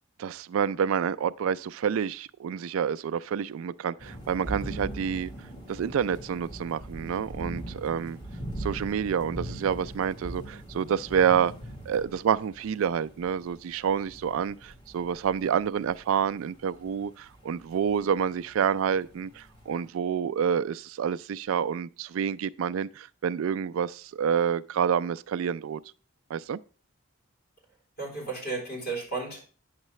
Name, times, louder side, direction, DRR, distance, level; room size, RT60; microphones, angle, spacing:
voice 1, 0.2-5.3 5.7-8.2 8.6-11.5 11.9-25.8 26.3-26.6, right 7 dB, 70° right, 0.3 m, -28 dB
sound 1, 4.0-19.9, right 1 dB, 20° left, 1.4 m, -41 dB
voice 2, 28.0-29.5, right 3 dB, 50° left, 3.8 m, -34 dB
8.9 x 6.6 x 3.1 m
head